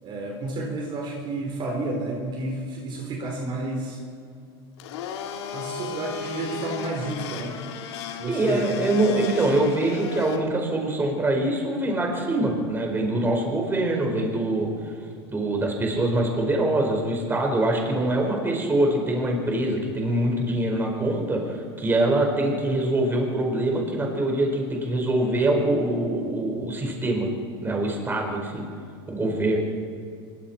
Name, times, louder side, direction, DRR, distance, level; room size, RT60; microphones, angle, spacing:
voice 1, 0.0-4.0 5.5-7.6 8.2-8.9, right 2 dB, 35° right, 0 dB, 4.0 m, -31 dB
Domestic sounds home sounds, 4.8-10.4, left 6 dB, 80° left, 2.9 m, -35 dB
voice 2, 8.3-14.9 15.3-27.3 27.6-28.6 29.1-29.6, right 1 dB, 15° right, 1 dB, 5.0 m, -24 dB
24.5 x 23.0 x 4.5 m, 2.4 s
supercardioid pair, 135°, 14 cm